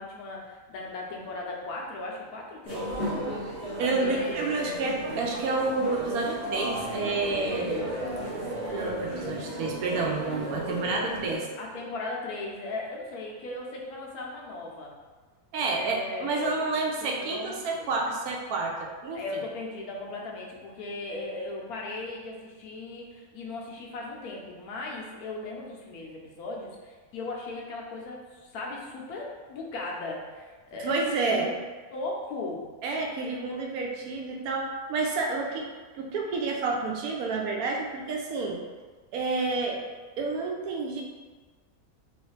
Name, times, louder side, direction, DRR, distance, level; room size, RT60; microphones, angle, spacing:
voice 1, 0.0-2.9 3.8-4.7 11.6-14.9 15.7-16.6 17.0-17.9 19.1-31.5 31.9-32.6, left 2 dB, 90° left, -1 dB, 1.2 m, -37 dB
sound 1, 2.6-11.4, right 1 dB, 35° right, 0.9 m, -34 dB
voice 2, 3.8-7.7 8.3-8.4 8.7-11.5 15.5-19.4 30.8-31.5 32.8-35.7 35.9-38.6 39.1-39.8 40.2-41.0, right 3 dB, 90° right, 0 dB, 1.1 m, -29 dB
3.1 x 3.1 x 3.1 m, 1.4 s
omnidirectional pair, 1.5 m